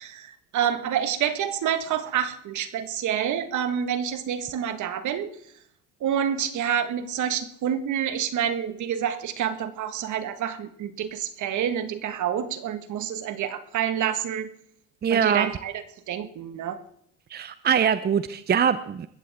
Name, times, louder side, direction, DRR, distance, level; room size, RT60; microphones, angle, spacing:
voice 1, 0.0-5.3 6.0-14.5 15.1-15.7 16.1-16.8, right 9 dB, 55° right, 10 dB, 1.7 m, -28 dB
voice 2, 15.0-15.5 17.3-19.1, right 7 dB, 30° right, 13 dB, 0.7 m, -23 dB
21.5 x 14.5 x 3.6 m, 0.70 s
supercardioid pair, 80°, 35 cm